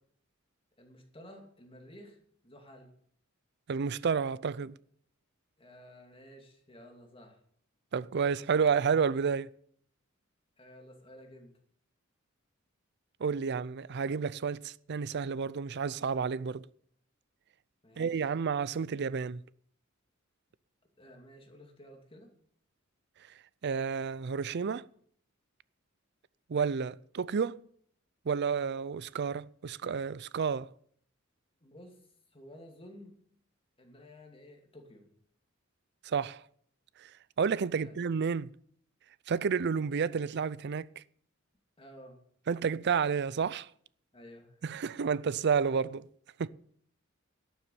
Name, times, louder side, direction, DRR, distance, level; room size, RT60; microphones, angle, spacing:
voice 1, 0.8-2.2 2.4-2.9 5.6-7.4 10.6-11.5 17.8-18.1 21.0-22.3 31.6-32.0 32.3-33.1 33.8-35.1 37.7-37.9 41.8-42.2 44.1-44.6, equal, 25° left, 2.7 m, -53 dB
voice 2, 3.7-4.8 7.9-9.5 13.2-16.6 18.0-19.4 23.6-24.9 26.5-27.6 28.3-30.7 36.0-36.4 37.0-37.1 37.4-38.5 39.3-41.0 42.5-43.7 44.6-46.1 46.4-46.5, right 6 dB, 55° right, 0.5 m, -30 dB
12.0 x 7.2 x 8.4 m
head